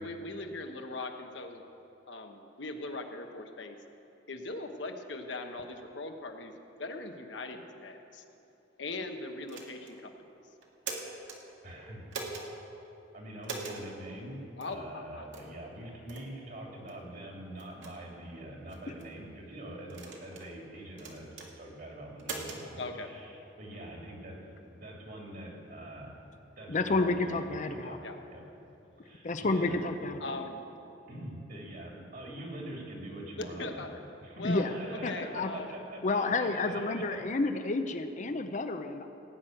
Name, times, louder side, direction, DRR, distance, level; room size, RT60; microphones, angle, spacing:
voice 1, 0.0-1.6 2.1-3.8 4.3-6.5 6.8-8.2 8.8-10.1 14.6-15.3 22.8-23.1 28.0-28.2 30.2-30.6 33.4-33.9 34.4-35.7, left 2 dB, 75° left, 5 dB, 1.1 m, -40 dB
sound 1, 9.5-10.0 10.6-11.4 12.1-12.5 13.4-13.8 14.6-14.7 15.3-15.5 16.1-16.3 16.9-17.0 17.6-17.9 18.7-19.1 19.9-20.5 21.0-21.5 22.2-22.6, right 4 dB, 85° right, 2.0 m, -41 dB
voice 2, 11.6-12.0 13.1-14.4 14.7-24.4 24.7-26.1 26.6-28.0 28.3-28.4 29.0-29.8 31.1-33.9 34.2-37.2, right 1 dB, 50° right, -1 dB, 2.7 m, -44 dB
voice 3, 26.7-28.0 29.2-30.4 34.4-34.7 35.0-35.5 36.0-39.1, left 3 dB, 40° left, 8 dB, 0.6 m, -30 dB
18.0 x 6.2 x 9.1 m, 2.9 s
head